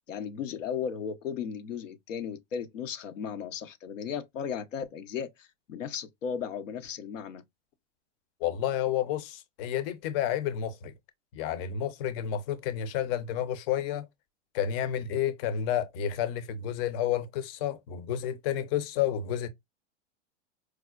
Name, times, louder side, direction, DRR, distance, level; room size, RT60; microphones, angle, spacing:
voice 1, 0.1-7.4, left 7 dB, 85° left, 0.7 m, -36 dB
voice 2, 8.4-10.9 11.3-14.1 14.5-19.5, left 10 dB, 50° left, 0.7 m, -30 dB
4.7 x 2.1 x 2.3 m
hypercardioid pair, 115°, 37 cm